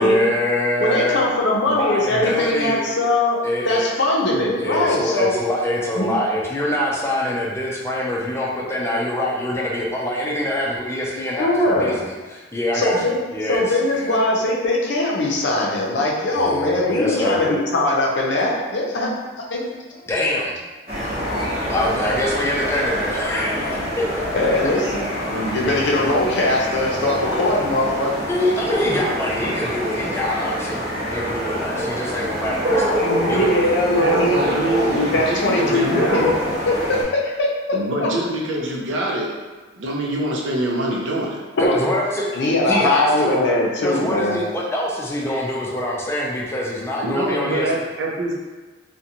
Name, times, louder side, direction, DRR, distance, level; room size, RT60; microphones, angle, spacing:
voice 1, 0.0-1.2 1.7-2.8 3.4-3.9 4.6-12.9 13.3-13.6 13.9-14.2 16.3-17.6 20.1-20.6 21.0-21.1 21.4-24.0 28.3-33.8 41.6-42.4 42.7-43.5 43.8-47.7, left 1 dB, 15° left, -3 dB, 0.4 m, -24 dB
voice 2, 0.8-5.3 6.0-6.1 11.4-11.9 12.7-13.2 13.5-19.1 19.5-19.6 24.3-28.2 33.0-34.6 34.9-36.3 36.7-37.5 38.0-38.1 41.6-41.8 42.3-44.4, left 1 dB, 65° left, -2 dB, 0.5 m, -21 dB
sound 1, 20.9-37.0, equal, 35° right, 0.8 m, -25 dB
voice 3, 34.0-36.2 37.7-39.3 39.7-41.4 47.0-48.4, right 1 dB, 80° right, -2 dB, 0.5 m, -24 dB
2.5 x 2.1 x 2.8 m, 1.3 s
head